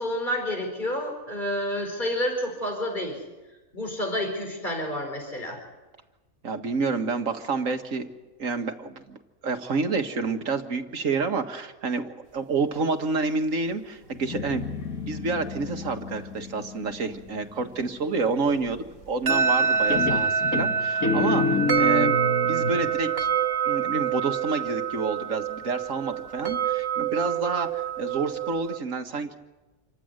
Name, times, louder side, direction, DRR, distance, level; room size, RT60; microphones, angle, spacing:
voice 1, 0.0-3.2 3.7-5.6, left 1 dB, 35° left, 3 dB, 4.9 m, -29 dB
voice 2, 6.4-8.1 8.4-14.7 15.1-22.1 22.5-23.3 23.7-29.4, right 4 dB, 70° right, 6 dB, 2.0 m, -29 dB
Guitar, 14.1-17.7 19.3-19.7 19.9-22.8, left 4 dB, 80° left, 2.1 m, -29 dB
sound 1, 19.0-28.8, right 7 dB, 45° right, 1.6 m, -26 dB
27.5 x 15.5 x 9.6 m, 1.1 s
omnidirectional pair, 1.4 m